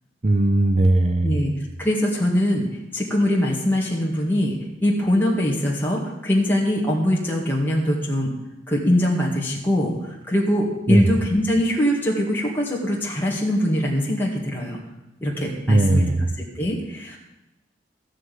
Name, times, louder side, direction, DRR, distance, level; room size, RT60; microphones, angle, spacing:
voice 1, 0.2-1.3 10.9-11.1 15.7-16.2, right 1 dB, 35° right, 9 dB, 0.7 m, -18 dB
voice 2, 1.8-8.3 8.7-14.8 15.2-16.1 16.4-17.2, left 1 dB, 10° left, -3 dB, 2.1 m, -22 dB
13.0 x 6.3 x 9.3 m, 0.96 s
head